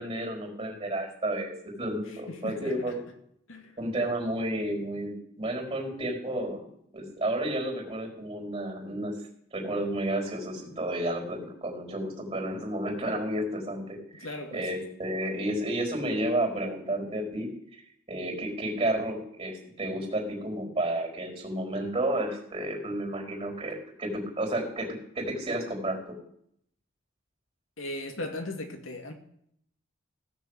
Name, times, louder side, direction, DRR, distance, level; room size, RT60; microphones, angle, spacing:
voice 1, 0.0-1.5 1.8-3.0 3.8-6.7 6.9-9.2 9.5-17.5 18.1-24.9 25.1-26.0, right 1 dB, 30° right, 2 dB, 4.4 m, -31 dB
voice 2, 2.1-2.9 3.5-3.7 14.2-14.7 27.8-29.1, left 1 dB, 80° left, 4 dB, 2.3 m, -38 dB
16.5 x 6.9 x 8.2 m, 0.69 s
head